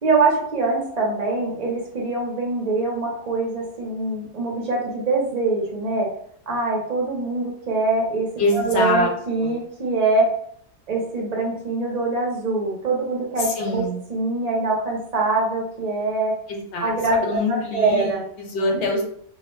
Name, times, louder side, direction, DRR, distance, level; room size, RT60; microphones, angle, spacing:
voice 1, 0.0-6.1 6.5-10.3 10.9-13.8 14.1-16.3 16.8-17.4 17.7-18.2 18.7-18.8, right 3 dB, 40° right, -2 dB, 0.6 m, -23 dB
voice 2, 8.4-9.1 9.4-9.6 13.4-14.0 16.5-19.0, left 2 dB, 60° left, 1 dB, 0.9 m, -25 dB
2.4 x 2.1 x 3.1 m, 0.65 s
omnidirectional pair, 1.4 m